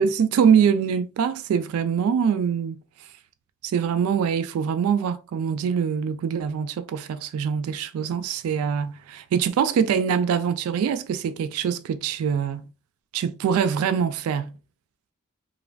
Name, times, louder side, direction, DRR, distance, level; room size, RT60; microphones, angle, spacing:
voice 1, 0.0-2.8 3.6-12.7 13.1-14.6, right 7 dB, 85° right, 0.3 m, -24 dB
3.1 x 2.4 x 2.2 m
head